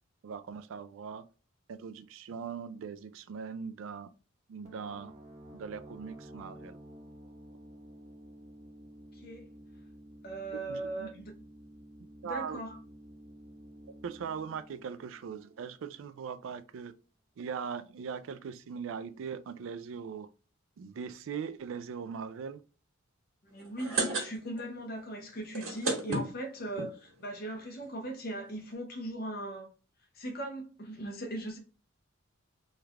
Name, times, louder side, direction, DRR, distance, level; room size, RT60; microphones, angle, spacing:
voice 1, 0.2-1.2 1.7-4.1 4.5-5.1 5.5-6.8 10.7-11.1 12.2-12.6 14.0-16.9 17.4-20.3 20.8-22.6, right 6 dB, 65° right, 0.3 m, -40 dB
sound 1, 4.6-16.2, right 1 dB, 35° right, 0.8 m, -52 dB
voice 2, 9.1-9.5 10.2-11.4 12.2-12.8 23.5-29.7 30.1-31.6, right 1 dB, 45° left, 0.7 m, -39 dB
sound 2, 23.6-24.7 25.0-25.1 25.4-26.9 27.6-27.7 27.9-28.0 28.2-28.4, right 2 dB, 90° right, 1.3 m, -32 dB
3.2 x 2.4 x 3.1 m
head